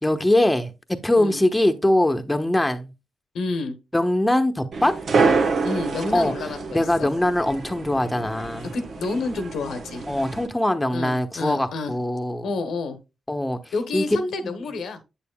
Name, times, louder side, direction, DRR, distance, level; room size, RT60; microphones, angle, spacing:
voice 1, 0.0-2.9 3.9-4.9 6.1-6.3 6.7-8.7 10.1-12.5 13.3-13.6 13.9-14.0 14.4-14.5, left 1 dB, 10° left, 1.0 m, -22 dB
voice 2, 3.3-3.8 5.6-7.1 8.7-10.0 10.9-12.0 12.4-13.0 13.7-15.0, left 3 dB, 80° left, 1.0 m, -29 dB
sound 1, 4.7-10.5, right 4 dB, 70° right, 1.2 m, -27 dB
8.0 x 6.8 x 2.3 m
cardioid pair, 60°, 0 cm